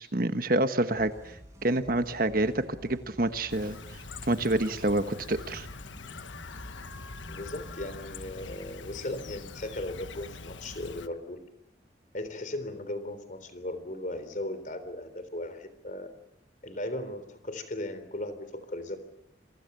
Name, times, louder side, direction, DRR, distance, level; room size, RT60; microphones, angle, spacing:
voice 1, 0.0-1.4 1.6-4.0 4.3-5.7, right 1 dB, 50° right, 9 dB, 1.4 m, -28 dB
sound 1, 0.9-7.9, equal, 15° right, 6.7 m, -50 dB
Chirp tweet, 3.5-11.1, left 3 dB, 90° left, 1.3 m, -43 dB
voice 2, 7.3-11.4 12.1-16.1 16.6-19.0, left 1 dB, 45° left, 12 dB, 3.7 m, -37 dB
29.5 x 23.5 x 6.9 m, 0.77 s
head